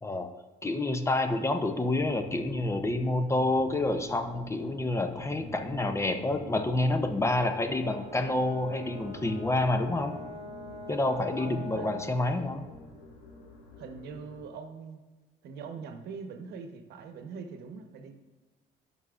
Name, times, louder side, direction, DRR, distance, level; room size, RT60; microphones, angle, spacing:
voice 1, 0.0-0.3 0.6-10.2 10.9-12.6, left 2 dB, 15° left, 7 dB, 0.5 m, -28 dB
sound 1, 1.9-14.4, left 1 dB, 80° left, 1.8 m, -47 dB
Brass instrument, 7.8-12.3, left 1 dB, 25° right, 2.4 m, -43 dB
voice 2, 11.4-11.9 13.8-15.0 15.4-18.1, right 5 dB, 75° right, 6 dB, 0.9 m, -42 dB
11.0 x 5.5 x 2.4 m, 1.3 s
cardioid pair, 110°, 17 cm